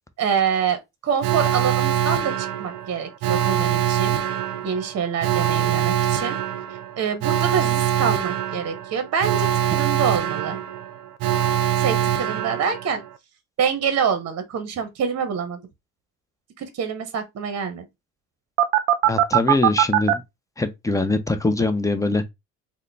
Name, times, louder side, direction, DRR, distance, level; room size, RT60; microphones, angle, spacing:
voice 1, 0.2-4.2 4.6-6.4 7.0-10.6 11.8-13.0 13.6-15.6 16.6-17.8, right 7 dB, 45° right, 0.9 m, -26 dB
Alarm, 1.2-13.1 18.6-20.1, right 12 dB, 75° right, 0.5 m, -23 dB
voice 2, 19.0-20.2 20.6-22.2, left 2 dB, 10° left, 0.6 m, -22 dB
3.6 x 2.2 x 3.3 m
supercardioid pair, 70°, 36 cm